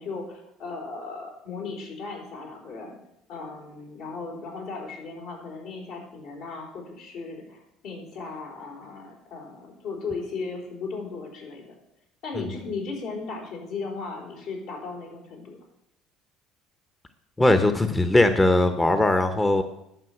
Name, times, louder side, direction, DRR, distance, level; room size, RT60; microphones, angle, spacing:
voice 1, 0.0-3.0 3.3-11.7 12.2-15.6, left 4 dB, 75° left, -1 dB, 4.2 m, -36 dB
voice 2, 17.4-19.6, left 2 dB, 15° left, 9 dB, 0.9 m, -20 dB
11.0 x 5.6 x 8.0 m, 0.81 s
supercardioid pair, 85°, 0 cm